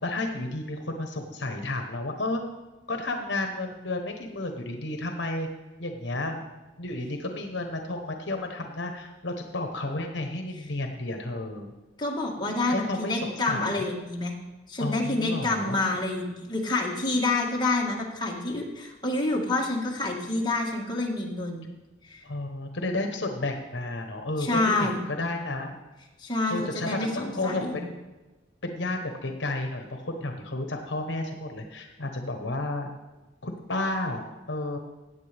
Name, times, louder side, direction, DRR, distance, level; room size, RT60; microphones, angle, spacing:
voice 1, 0.0-2.4 2.9-5.5 5.8-6.4 6.8-11.7 12.7-13.9 14.8-15.9 22.2-25.8 26.5-28.0 28.6-32.9 33.4-34.8, left 2 dB, 70° left, 4 dB, 1.1 m, -32 dB
voice 2, 12.0-14.3 14.7-21.7 22.0-22.2 24.4-25.0 26.2-27.8, left 2 dB, 25° left, -3 dB, 1.7 m, -28 dB
16.0 x 8.6 x 3.5 m, 1.2 s
head